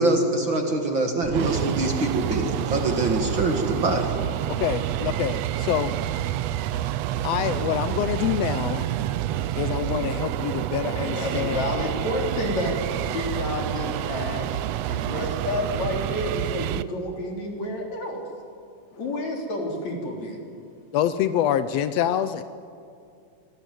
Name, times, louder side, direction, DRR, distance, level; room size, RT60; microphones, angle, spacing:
voice 1, 0.0-4.1, right 2 dB, 40° right, 3 dB, 2.4 m, -24 dB
sound 1, 1.2-16.8, right 12 dB, 80° right, 1.4 m, -28 dB
voice 2, 4.6-5.9 7.2-8.9 9.6-11.6 20.9-22.4, left 10 dB, 85° left, 12 dB, 1.4 m, -26 dB
voice 3, 10.9-14.5 14.9-18.2 19.0-20.4, left 1 dB, 55° left, 1 dB, 4.8 m, -30 dB
25.5 x 19.0 x 9.4 m, 2.5 s
omnidirectional pair, 3.8 m